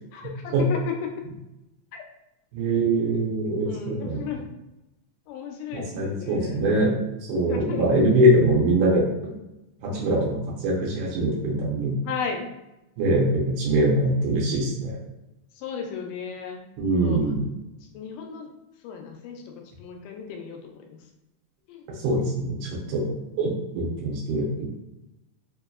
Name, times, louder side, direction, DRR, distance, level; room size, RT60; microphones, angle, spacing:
voice 1, 0.1-1.1 1.9-2.0 3.6-4.5 5.3-6.6 7.5-8.0 9.9-10.2 12.0-12.4 15.6-16.6 17.0-17.3 17.9-18.5 18.8-19.5 19.8-21.0 21.7-21.9, left 7 dB, 80° left, 2 dB, 2.1 m, -34 dB
voice 2, 2.5-4.2 5.7-6.9 7.3-9.1 9.8-10.4 10.6-11.9 13.0-15.0 16.8-17.4 22.0-23.0 23.4-24.7, right 1 dB, 75° right, -4 dB, 2.2 m, -23 dB
5.2 x 2.7 x 2.4 m, 0.94 s
omnidirectional pair, 3.9 m